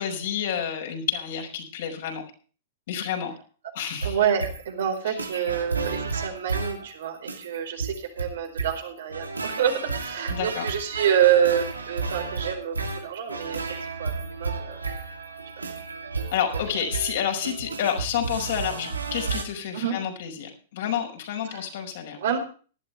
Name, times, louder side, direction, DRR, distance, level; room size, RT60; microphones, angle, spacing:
voice 1, 0.0-2.2 2.9-3.3 3.7-4.2 5.1-5.2 10.3-10.7 16.3-22.2, left 9 dB, 60° left, 2 dB, 5.7 m, -29 dB
sound 1, 3.8-19.4, right 4 dB, 90° right, 2.6 m, -32 dB
voice 2, 4.0-13.6 14.0-14.8 15.6-15.7 19.7-19.9 22.2-22.4, right 9 dB, 65° right, 3 dB, 4.7 m, -27 dB
19.0 x 12.0 x 3.4 m, 0.39 s
figure-of-eight pair, 110°, 0 cm